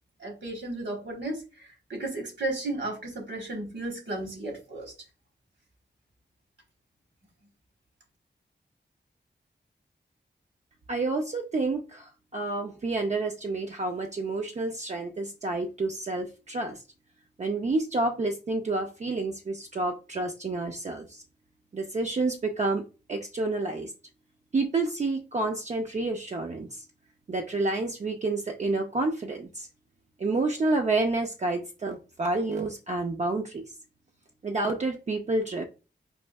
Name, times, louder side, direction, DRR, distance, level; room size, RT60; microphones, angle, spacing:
voice 1, 0.2-4.9, right 2 dB, 70° right, 1.2 m, -34 dB
voice 2, 10.9-16.8 17.4-21.2 21.7-22.8 23.1-23.9 24.5-26.8 27.3-29.7 30.2-33.6 34.4-35.6, right 2 dB, 40° right, 0.4 m, -29 dB
4.2 x 2.6 x 2.2 m
wide cardioid pair, 110°, 19 cm